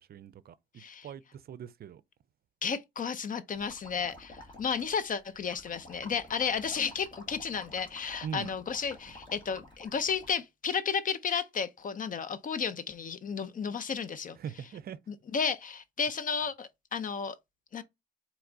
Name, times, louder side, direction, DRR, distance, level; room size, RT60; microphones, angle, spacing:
voice 1, 0.0-2.0 8.2-8.5 14.4-15.0, right 8 dB, 50° right, 0.5 m, -42 dB
voice 2, 0.8-1.1 2.6-14.4 15.1-17.4 17.7-17.8, left 6 dB, 45° left, 0.6 m, -33 dB
sound 1, 3.5-10.3, left 1 dB, 25° left, 2.0 m, -51 dB
4.4 x 3.0 x 3.8 m
cardioid pair, 90°, 20 cm